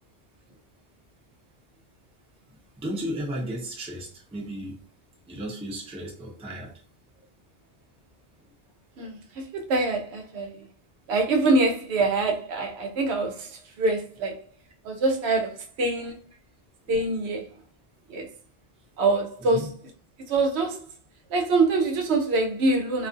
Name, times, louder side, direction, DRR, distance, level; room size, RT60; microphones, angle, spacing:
voice 1, 2.5-4.8 5.3-6.8 7.2-7.3 8.4-8.5 16.8-17.0 19.4-19.7, equal, 10° right, 0.3 m, -35 dB
voice 2, 9.0-10.6 11.1-13.5 13.8-14.4 14.8-16.2 16.9-17.4 18.1-18.3 19.0-19.7 20.3-20.8 21.3-23.1, right 3 dB, 75° right, 0.8 m, -24 dB
2.4 x 2.3 x 2.5 m
omnidirectional pair, 1.1 m